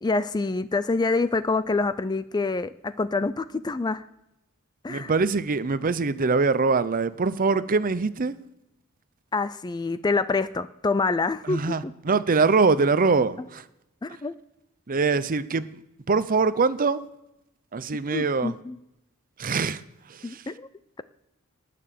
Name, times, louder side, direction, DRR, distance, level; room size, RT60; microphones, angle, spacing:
voice 1, 0.0-4.0 4.8-5.1 9.3-11.9 14.0-14.3 18.1-18.8 20.2-20.7, left 3 dB, 20° left, 0.4 m, -26 dB
voice 2, 4.9-8.3 11.5-13.6 14.9-15.8 16.1-17.0 17.7-18.5 19.4-19.8 20.1-20.4, right 4 dB, 40° right, 0.6 m, -23 dB
19.0 x 6.8 x 6.8 m
head